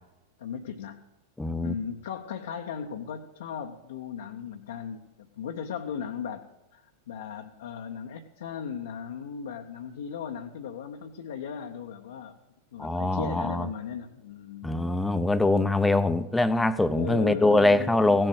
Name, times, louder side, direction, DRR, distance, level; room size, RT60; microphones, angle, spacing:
voice 1, 0.4-1.0 1.6-5.1 5.4-6.4 6.7-12.4 12.7-14.7 16.9-17.9, left 7 dB, 60° left, 0.7 m, -37 dB
voice 2, 1.4-1.7 12.8-13.7 14.6-18.3, left 2 dB, 5° left, 0.6 m, -23 dB
16.5 x 7.7 x 6.3 m
figure-of-eight pair, 90°, 0 cm